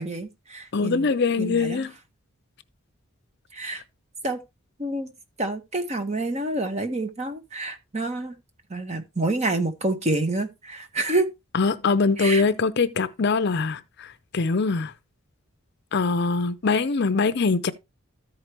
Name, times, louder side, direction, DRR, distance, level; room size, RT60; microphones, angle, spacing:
voice 1, 0.0-1.1 1.4-1.9 3.5-3.8 4.2-4.4 4.8-5.1 5.4-8.3 8.7-11.3 12.2-12.4, right 2 dB, 30° right, 1.0 m, -28 dB
voice 2, 0.7-1.9 11.5-14.1 14.3-14.9 15.9-17.7, left 4 dB, 50° left, 0.5 m, -23 dB
14.0 x 4.8 x 3.0 m
head